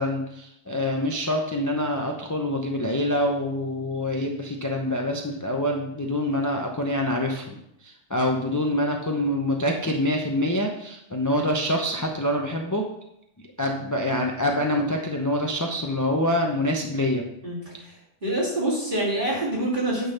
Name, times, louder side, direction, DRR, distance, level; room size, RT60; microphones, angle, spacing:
voice 1, 0.0-12.8 13.6-17.2, left 1 dB, 20° left, 1 dB, 0.7 m, -26 dB
voice 2, 17.4-17.9 18.2-20.1, right 1 dB, 40° right, -6 dB, 3.0 m, -26 dB
9.2 x 4.0 x 6.4 m, 0.78 s
omnidirectional pair, 1.3 m